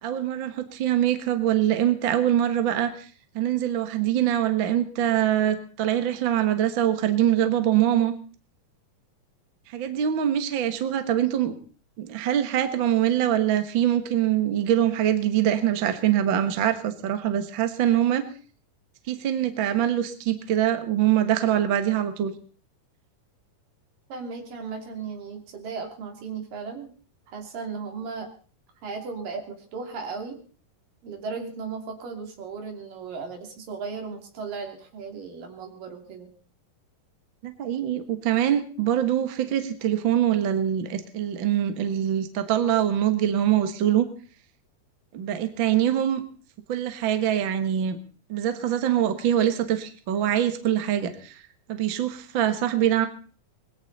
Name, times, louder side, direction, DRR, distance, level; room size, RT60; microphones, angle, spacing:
voice 1, 0.0-3.1 3.3-8.1 9.7-11.5 12.0-18.2 19.1-22.3 37.4-44.1 45.1-46.2 46.7-48.0 48.3-51.4 51.7-53.1, right 11 dB, 50° right, 8 dB, 1.5 m, -24 dB
voice 2, 24.1-26.9 27.3-28.3 28.8-30.4 31.0-36.3, right 5 dB, 70° right, 3 dB, 4.5 m, -36 dB
21.0 x 15.5 x 4.1 m, 0.42 s
omnidirectional pair, 4.0 m